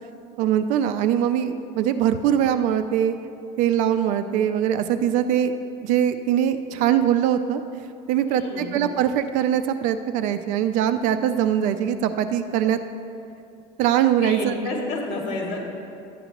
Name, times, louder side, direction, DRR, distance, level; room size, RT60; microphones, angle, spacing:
voice 1, 0.4-3.2 3.6-5.5 5.8-7.6 8.1-12.8 13.8-14.5, right 10 dB, 60° right, 10 dB, 0.5 m, -22 dB
voice 2, 8.3-8.8 14.2-15.6, left 2 dB, 65° left, -1 dB, 1.9 m, -30 dB
12.0 x 9.2 x 2.9 m, 2.5 s
cardioid pair, 165°, 15 cm